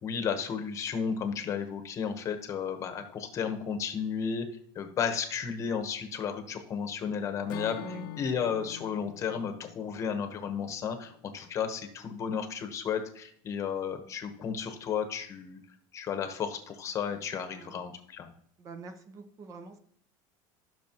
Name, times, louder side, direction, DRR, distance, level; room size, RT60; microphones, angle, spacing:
voice 1, 0.0-4.5 4.7-7.8 8.2-15.6 15.9-18.3, left 7 dB, 30° left, 7 dB, 1.1 m, -33 dB
Acoustic guitar / Strum, 7.5-11.6, left 12 dB, 80° left, 0.8 m, -45 dB
voice 2, 17.5-17.9 18.6-19.8, right 3 dB, 30° right, 8 dB, 0.9 m, -45 dB
14.5 x 6.4 x 3.0 m, 0.64 s
cardioid pair, 155°, 10 cm